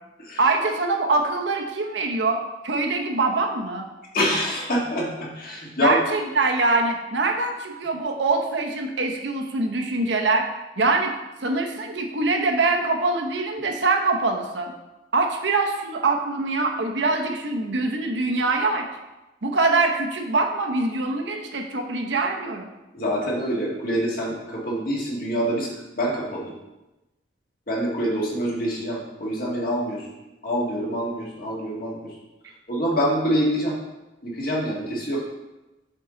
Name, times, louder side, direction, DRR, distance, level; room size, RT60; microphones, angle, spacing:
voice 1, 0.4-3.8 5.8-10.5 10.8-11.1 11.4-14.7 15.1-18.9 19.4-22.7, right 3 dB, 85° right, 3 dB, 0.8 m, -23 dB
voice 2, 4.1-6.0 22.9-25.7 26.0-26.5 27.7-30.1 30.4-32.1 32.7-33.7 34.2-35.2, equal, 55° left, -3 dB, 1.6 m, -25 dB
7.3 x 3.8 x 3.8 m, 1.0 s
head